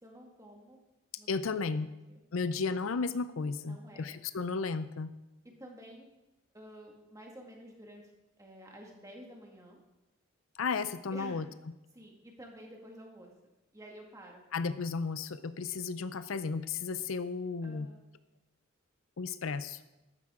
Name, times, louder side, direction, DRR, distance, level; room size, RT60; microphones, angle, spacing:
voice 1, 0.0-0.8 1.2-1.6 1.9-2.2 3.6-4.1 5.4-6.1 6.5-8.1 8.4-9.8 11.1-11.4 11.9-13.3 13.7-14.4 17.6-18.0, equal, 15° right, 0 dB, 2.0 m, -51 dB
voice 2, 1.3-1.9 2.3-5.1 10.6-11.5 14.5-17.9 19.2-19.8, left 4 dB, 70° left, 13 dB, 0.5 m, -34 dB
13.5 x 11.5 x 3.7 m, 1.0 s
head